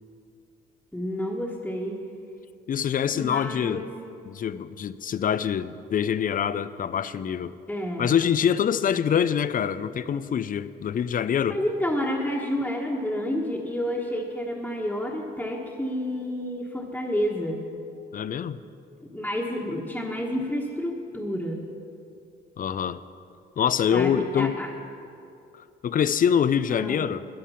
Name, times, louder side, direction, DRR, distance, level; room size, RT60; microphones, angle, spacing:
voice 1, 0.9-2.0 3.1-3.9 7.7-8.1 11.5-17.6 19.1-21.6 23.9-24.7 26.7-27.0, equal, 5° left, 1.4 m, -29 dB
voice 2, 2.7-3.9 4.2-7.5 8.0-11.6 18.1-18.6 22.6-23.0 23.6-24.6 25.8-27.2, left 8 dB, 45° left, 0.5 m, -25 dB
13.5 x 10.0 x 5.7 m
cardioid pair, 90°, 20 cm